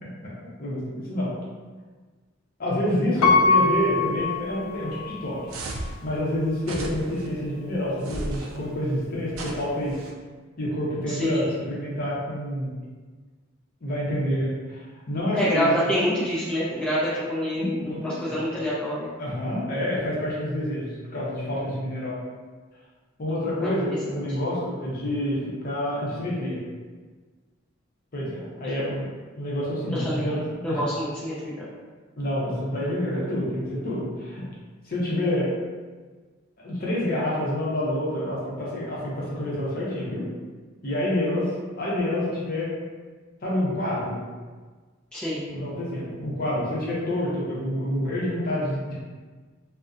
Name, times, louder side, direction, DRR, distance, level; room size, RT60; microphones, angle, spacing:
voice 1, 0.0-0.3 0.6-1.3 2.6-5.4 6.0-10.0 10.6-12.7 13.8-16.0 17.5-18.4 19.2-22.2 23.2-26.6 28.1-29.1 29.4-30.8 32.2-34.5 34.8-35.5 36.6-40.3 40.8-41.5 41.8-42.7 43.4-44.2 45.5-49.0, left 1 dB, 45° left, -6 dB, 0.6 m, -28 dB
Piano, 3.2-5.2 5.8-5.9, left 3 dB, 90° left, 0.4 m, -22 dB
sound 1, 5.5-6.0 6.6-7.3 8.0-8.6 9.3-10.1, right 2 dB, 85° right, 0.3 m, -35 dB
voice 2, 11.1-11.5 15.3-19.1 23.6-24.2 29.9-30.4 30.6-31.7 45.1-45.4, equal, 5° left, -9 dB, 0.4 m, -27 dB
2.5 x 2.1 x 2.4 m, 1.4 s
head